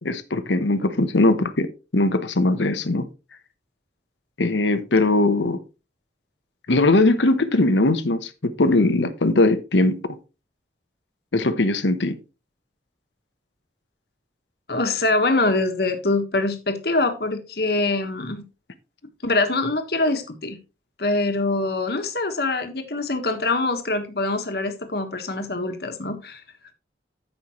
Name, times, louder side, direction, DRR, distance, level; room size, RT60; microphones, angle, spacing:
voice 1, 0.0-1.7 1.9-3.1 4.4-5.6 6.7-10.2 11.3-12.2, left 2 dB, 85° left, 1.0 m, -20 dB
voice 2, 14.7-18.4 19.2-20.6 21.0-26.4, left 2 dB, 60° left, 1.5 m, -24 dB
14.5 x 5.6 x 3.1 m
head